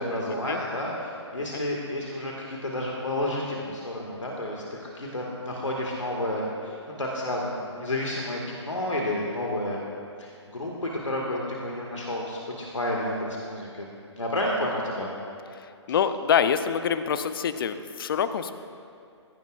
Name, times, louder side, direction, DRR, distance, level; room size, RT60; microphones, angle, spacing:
voice 1, 0.0-9.8 10.2-13.9 14.2-15.1, left 1 dB, 85° left, -2 dB, 2.0 m, -30 dB
voice 2, 15.9-18.5, left 7 dB, 50° left, 11 dB, 0.7 m, -25 dB
20.0 x 16.5 x 2.5 m, 2.4 s
figure-of-eight pair, 135°, 15 cm